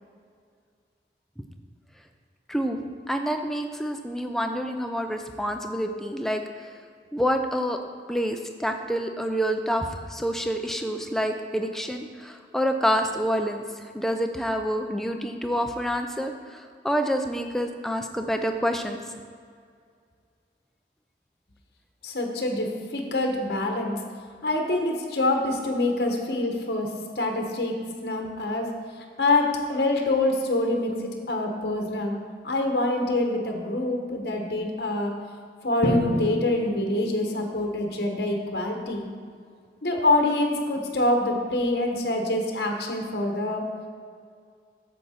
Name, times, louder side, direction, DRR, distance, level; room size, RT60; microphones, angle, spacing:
voice 1, 2.5-6.4 7.1-7.8 8.1-13.6 13.9-19.0, equal, ahead, 4 dB, 0.4 m, -27 dB
voice 2, 22.0-23.9 24.4-26.9 27.2-28.7 29.2-32.2 32.4-35.1 35.6-39.1 39.8-43.6, left 2 dB, 65° left, 2 dB, 1.0 m, -25 dB
Drum, 35.8-37.8, left 1 dB, 40° left, 0.9 m, -30 dB
8.5 x 6.7 x 4.3 m, 2.2 s
head